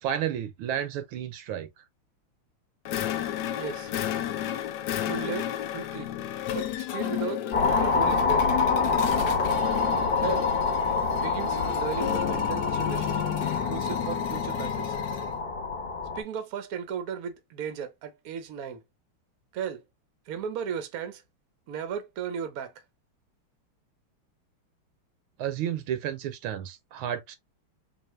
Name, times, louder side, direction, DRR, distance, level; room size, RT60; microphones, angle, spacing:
voice 1, 0.0-1.7 25.4-27.4, right 10 dB, 80° right, 1.5 m, -31 dB
sound 1, 2.9-15.4, left 12 dB, 75° left, 0.9 m, -32 dB
voice 2, 3.5-3.9 5.0-6.1 6.5-7.4 7.8-8.5 10.2-10.5 11.1-14.9 16.1-18.8 19.5-19.8 20.3-21.2 21.7-22.8, right 7 dB, 60° right, 1.0 m, -36 dB
sound 2, 7.5-16.2, left 4 dB, 40° left, 0.8 m, -27 dB
4.1 x 2.6 x 3.1 m
omnidirectional pair, 2.4 m